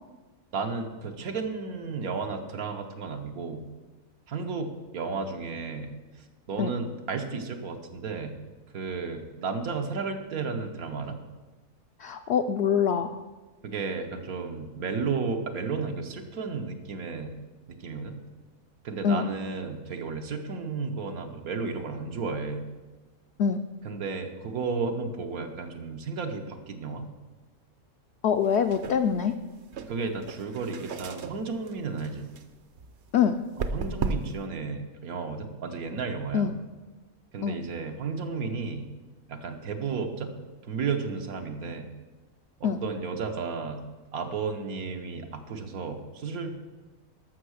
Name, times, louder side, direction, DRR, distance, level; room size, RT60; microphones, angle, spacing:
voice 1, 0.5-3.7 4.3-5.9 6.5-8.3 8.7-11.2 13.6-17.3 17.7-18.2 18.8-22.7 23.8-27.1 29.9-32.3 33.7-36.5 37.3-38.9 39.3-40.3 40.6-41.9 42.6-43.8 44.1-46.5, right 4 dB, 80° right, 5 dB, 1.5 m, -33 dB
voice 2, 12.0-13.2 19.0-19.2 23.4-23.6 28.2-29.3 33.1-33.4 36.3-36.5 37.4-37.6 42.6-42.8, left 7 dB, 65° left, 6 dB, 0.7 m, -24 dB
sound 1, 28.4-34.5, right 4 dB, 60° right, 0.9 m, -37 dB
12.5 x 6.4 x 6.3 m, 1.2 s
omnidirectional pair, 1.5 m